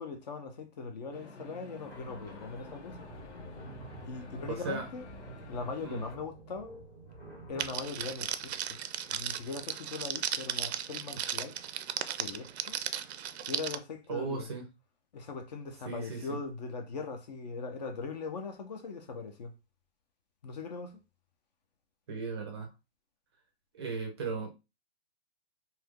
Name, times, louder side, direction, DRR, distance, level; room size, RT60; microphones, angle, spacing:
voice 1, 0.0-3.0 4.0-5.1 5.5-6.7 7.5-8.8 9.1-11.6 12.1-12.8 13.4-14.5 15.1-19.5 20.4-21.0, left 4 dB, 40° left, 0.6 m, -40 dB
sound 1, 1.1-6.2, left 2 dB, 85° left, 1.0 m, -49 dB
sound 2, 1.8-9.2, right 2 dB, 10° left, 0.8 m, -50 dB
voice 2, 4.5-4.9 5.8-6.0 14.1-14.7 15.9-16.3 22.1-22.7 23.7-24.5, right 4 dB, 25° right, 0.5 m, -36 dB
Crackle, 7.6-13.8, right 9 dB, 75° right, 0.5 m, -36 dB
2.8 x 2.5 x 3.5 m
hypercardioid pair, 160°, 34 cm